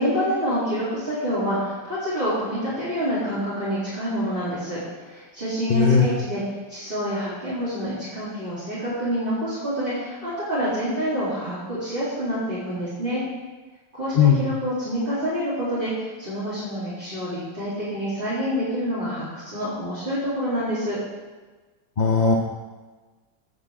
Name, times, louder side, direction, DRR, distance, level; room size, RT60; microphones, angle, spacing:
voice 1, 0.0-6.4 6.7-13.2 13.9-21.0, equal, 25° right, -13 dB, 3.7 m, -27 dB
voice 2, 5.7-6.1 14.1-14.4 22.0-22.3, left 6 dB, 45° left, -1 dB, 0.6 m, -17 dB
18.5 x 6.7 x 3.7 m, 1.3 s
omnidirectional pair, 2.1 m